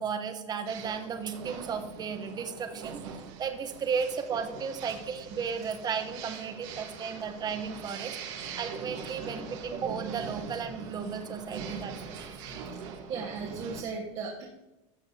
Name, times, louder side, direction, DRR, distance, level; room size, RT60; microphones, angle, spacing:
voice 1, 0.0-3.0 3.4-8.2 8.6-12.6, right 6 dB, 25° right, 8 dB, 0.9 m, -34 dB
sound 1, 0.7-13.8, right 5 dB, 70° right, 1.4 m, -42 dB
voice 2, 13.1-14.5, right 5 dB, 40° right, -3 dB, 1.4 m, -36 dB
12.5 x 6.7 x 2.7 m, 0.98 s
supercardioid pair, 125°, 16 cm